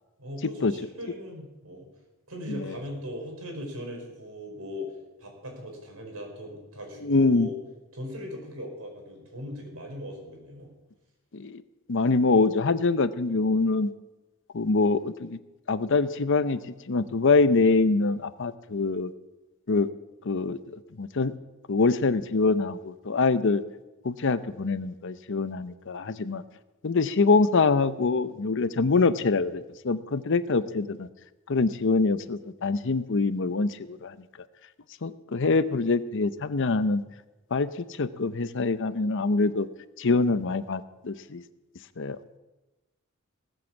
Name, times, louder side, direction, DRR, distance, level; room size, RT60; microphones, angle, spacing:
voice 1, 0.2-1.9 2.3-4.9 5.2-7.5 7.9-10.7, left 1 dB, 85° right, 2 dB, 4.7 m, -39 dB
voice 2, 7.0-7.5 11.3-11.6 11.9-13.9 14.5-15.4 15.7-16.6 16.9-19.1 19.7-19.9 20.2-21.3 21.7-23.6 24.0-26.4 26.8-31.1 31.5-34.1 35.0-37.0 37.5-37.7 38.0-39.7 40.0-41.4 42.0-42.2, left 3 dB, 60° left, 13 dB, 0.7 m, -24 dB
18.5 x 8.0 x 7.2 m, 1.1 s
head